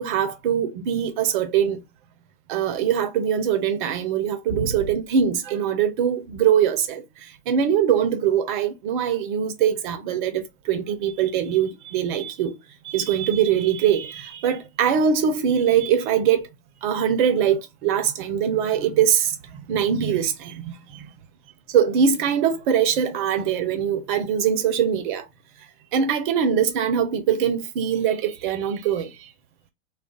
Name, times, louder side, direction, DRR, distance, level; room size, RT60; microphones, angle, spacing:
voice 1, 0.0-1.8 2.5-7.0 7.5-12.5 12.8-16.4 16.8-19.4 19.7-21.0 21.7-25.2 25.9-29.1, right 8 dB, 50° right, 0.9 m, -22 dB
2.5 x 2.2 x 3.7 m
hypercardioid pair, 110°, 33 cm